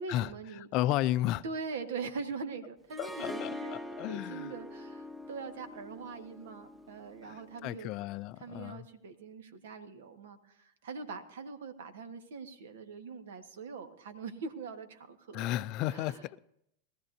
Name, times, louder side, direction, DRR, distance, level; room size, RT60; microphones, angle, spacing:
voice 1, 0.0-0.7 1.4-3.8 4.1-7.9 8.4-15.5 15.9-16.4, right 4 dB, 70° right, 1.4 m, -42 dB
voice 2, 0.7-1.4 3.0-4.5 7.2-8.9 15.3-16.4, left 14 dB, 50° left, 0.4 m, -33 dB
Harp, 2.9-8.0, left 1 dB, 5° right, 1.1 m, -44 dB
21.0 x 14.5 x 2.7 m
hypercardioid pair, 90°, 0 cm